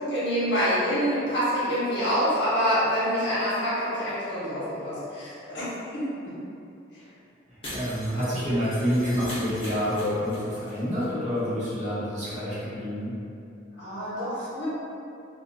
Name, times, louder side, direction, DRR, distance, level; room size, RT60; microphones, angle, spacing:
voice 1, 0.0-6.3 13.8-14.7, equal, 65° left, -10 dB, 1.0 m, -26 dB
voice 2, 7.5-13.1, equal, 40° right, -11 dB, 0.9 m, -28 dB
Shatter, 7.6-10.7 11.0-11.1 11.4-11.5, left 1 dB, 30° left, 0.8 m, -40 dB
2.5 x 2.4 x 2.6 m, 2.6 s
head